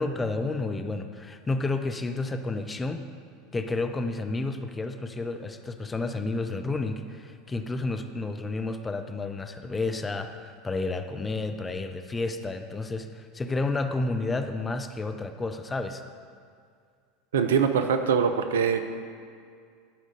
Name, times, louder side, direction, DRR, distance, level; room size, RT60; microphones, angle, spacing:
voice 1, 0.0-3.0 3.5-16.0, left 3 dB, 15° left, 7 dB, 0.6 m, -31 dB
voice 2, 17.3-18.9, right 6 dB, 65° right, 8 dB, 0.5 m, -23 dB
12.0 x 5.0 x 5.3 m, 2.2 s
figure-of-eight pair, 75°, 0 cm